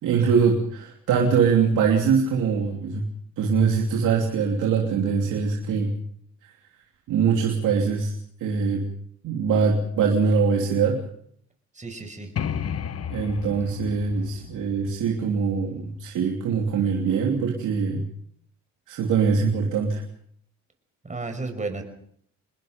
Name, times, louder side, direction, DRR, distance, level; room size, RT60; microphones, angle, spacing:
voice 1, 0.0-3.1 3.4-5.9 7.1-8.1 8.4-8.9 9.2-11.0 13.1-18.0 18.9-20.0, right 5 dB, 85° right, 0 dB, 3.0 m, -23 dB
voice 2, 11.7-12.3 21.0-21.8, right 3 dB, 25° right, 5 dB, 5.6 m, -32 dB
sound 1, 12.4-16.0, left 8 dB, 55° left, 1.4 m, -33 dB
27.5 x 21.0 x 5.2 m, 0.67 s
cardioid pair, 90°, 30 cm